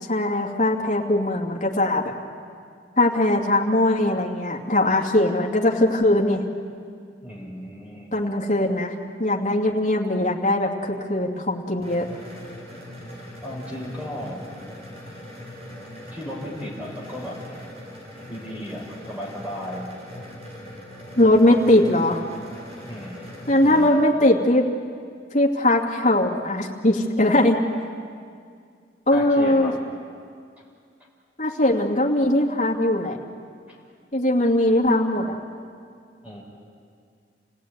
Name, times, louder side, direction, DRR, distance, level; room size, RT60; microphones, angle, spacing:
voice 1, 0.1-2.1 3.0-6.4 8.1-8.9 9.2-12.1 21.2-22.2 23.5-24.6 25.3-27.6 29.1-29.7 31.4-33.2 34.1-35.4, left 1 dB, 45° left, -1 dB, 2.6 m, -20 dB
voice 2, 7.2-8.2 13.4-14.5 16.1-17.4 18.3-19.9 22.8-23.3 23.6-23.9 29.1-29.8 30.6-30.7 33.7-33.8 36.2-36.4, equal, 10° right, -2 dB, 4.6 m, -35 dB
sound 1, 11.8-23.9, left 1 dB, 35° right, 5.9 m, -41 dB
29.0 x 17.5 x 9.6 m, 2.2 s
head